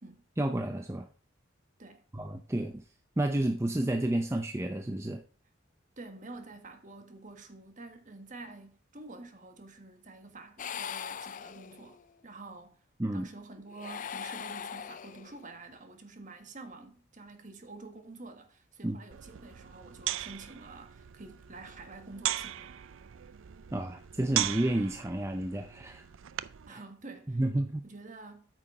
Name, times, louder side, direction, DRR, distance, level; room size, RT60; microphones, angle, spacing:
voice 1, 0.4-1.1 2.1-2.8 3.2-5.2 13.0-13.3 18.8-19.0 23.7-26.0 26.7-26.8 27.3-27.8, right 1 dB, 15° right, 0.5 m, -31 dB
voice 2, 6.0-12.8 13.1-22.7 26.7-28.5, right 3 dB, 40° right, 1.5 m, -48 dB
sound 1, 10.6-12.1 13.7-15.5, left 8 dB, 40° left, 0.4 m, -40 dB
sound 2, 19.1-26.7, right 12 dB, 80° right, 0.4 m, -38 dB
8.8 x 6.3 x 4.9 m
head